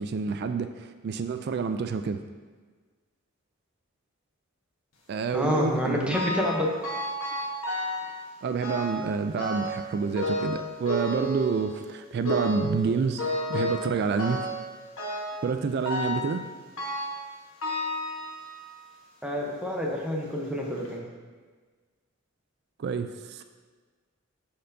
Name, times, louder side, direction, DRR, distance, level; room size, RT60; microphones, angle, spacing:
voice 1, 0.0-2.2 5.1-6.2 8.4-14.4 15.4-16.4 22.8-23.4, right 5 dB, 50° right, 8 dB, 0.3 m, -28 dB
voice 2, 5.3-6.7 19.2-21.0, left 1 dB, 5° right, -2 dB, 0.8 m, -28 dB
sound 1, 6.1-6.6 6.8-8.1 8.6-9.0 9.4-9.8 10.2-11.8 12.2-12.7 13.2-13.9 14.2-14.6 15.0-15.4 15.8-16.3 16.8-17.2 17.6-18.7 19.3-19.4 20.2-20.3 20.8-20.9, left 1 dB, 70° left, 1.3 m, -31 dB
12.5 x 4.3 x 2.7 m, 1.4 s
head